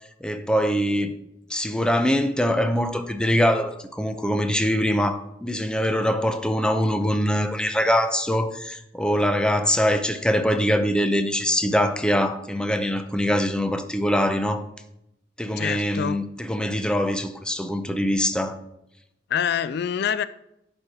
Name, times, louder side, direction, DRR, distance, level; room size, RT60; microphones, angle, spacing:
voice 1, 0.2-1.1 1.5-14.6 15.4-18.6, equal, 5° left, 7 dB, 0.6 m, -23 dB
voice 2, 15.6-16.2 19.3-20.2, left 8 dB, 65° left, 15 dB, 0.3 m, -25 dB
11.0 x 4.4 x 4.8 m, 0.82 s
head